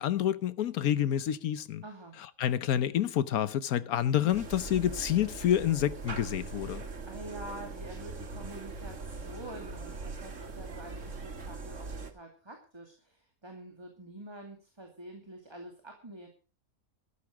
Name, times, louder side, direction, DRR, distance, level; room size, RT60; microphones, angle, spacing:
voice 1, 0.0-1.8 2.4-6.8, left 10 dB, 85° left, 1.3 m, -28 dB
voice 2, 1.8-2.2 7.1-16.3, right 1 dB, 20° right, 2.5 m, -47 dB
sound 1, 4.3-12.1, right 3 dB, 60° right, 2.0 m, -41 dB
13.5 x 11.5 x 6.1 m
omnidirectional pair, 1.5 m